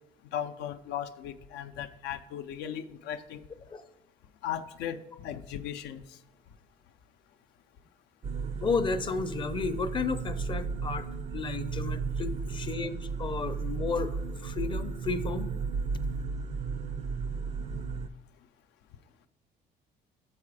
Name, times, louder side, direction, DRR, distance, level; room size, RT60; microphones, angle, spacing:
voice 1, 0.3-3.4 4.4-6.0 17.7-17.8, left 10 dB, 85° left, 10 dB, 0.5 m, -37 dB
sound 1, 8.2-18.1, right 5 dB, 40° right, 0.4 m, -34 dB
voice 2, 8.6-11.1 11.3-15.5, left 4 dB, 30° left, 11 dB, 0.5 m, -33 dB
7.4 x 4.9 x 4.8 m, 0.94 s
cardioid pair, 110°, 17 cm